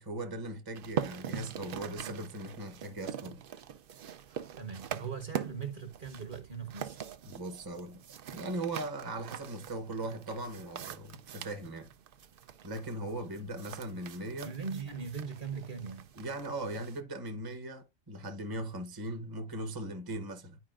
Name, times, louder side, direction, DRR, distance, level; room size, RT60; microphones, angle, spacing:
voice 1, 0.0-3.4 7.2-8.0 8.3-11.9 12.6-14.5 16.1-20.6, right 1 dB, 20° right, 0.8 m, -39 dB
sound 1, 0.7-17.0, right 8 dB, 60° right, 0.6 m, -43 dB
voice 2, 4.5-7.1 14.4-16.1, right 6 dB, 40° right, 1.2 m, -40 dB
11.0 x 4.8 x 2.4 m
omnidirectional pair, 1.4 m